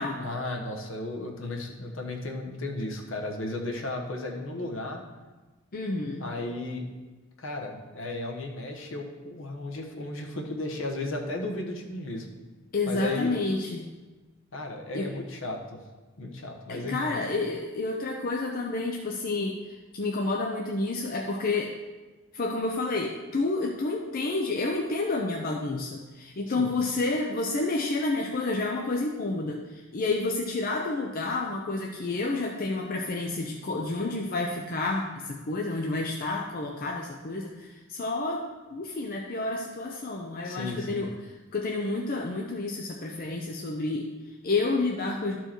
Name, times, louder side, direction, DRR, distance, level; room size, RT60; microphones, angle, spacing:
voice 1, 0.2-5.0 6.2-6.9 7.4-12.3 12.9-13.3 14.5-15.8 16.2-17.2 26.5-26.7 40.4-41.1, left 2 dB, 65° left, 2 dB, 1.2 m, -34 dB
voice 2, 5.7-6.3 12.7-13.9 14.9-15.1 16.7-21.7 22.3-38.4 38.7-45.4, left 3 dB, 45° left, 1 dB, 0.6 m, -30 dB
12.0 x 4.6 x 4.5 m, 1.3 s
head